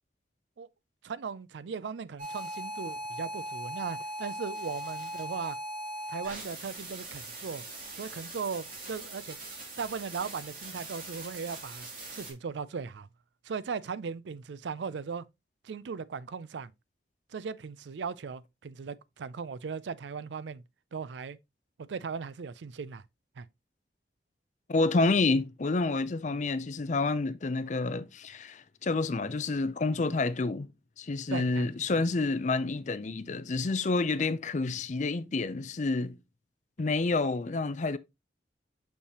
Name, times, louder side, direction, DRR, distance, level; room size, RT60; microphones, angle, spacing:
voice 1, 1.0-5.6 6.1-7.6 7.9-9.4 9.8-13.1 13.4-15.2 15.6-16.7 17.3-20.6 20.9-21.4 21.9-23.0 23.4-23.5 31.3-31.7, right 5 dB, 80° right, 0.4 m, -38 dB
sound 1, 2.2-12.3, right 1 dB, 50° right, 2.6 m, -40 dB
voice 2, 24.7-30.7 31.0-36.2 36.8-38.0, left 3 dB, 40° left, 0.5 m, -29 dB
6.5 x 5.5 x 2.9 m
head